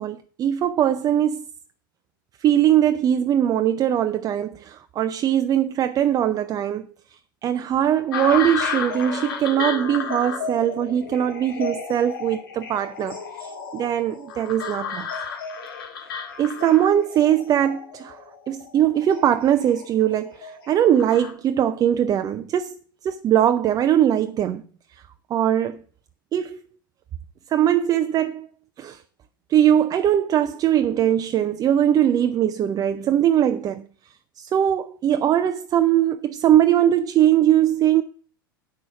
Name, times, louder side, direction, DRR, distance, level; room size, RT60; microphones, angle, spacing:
voice 1, 0.0-1.4 2.4-6.9 7.4-15.1 16.4-18.2 18.5-24.6 24.9-25.0 25.3-25.8 26.3-26.6 27.5-28.5 28.8-29.0 29.5-33.8 34.4-38.0, right 10 dB, 30° right, 0.6 m, -21 dB
sound 1, 8.1-21.3, left 6 dB, 75° left, 2.2 m, -32 dB
8.5 x 6.2 x 5.9 m
hypercardioid pair, 90°, 12 cm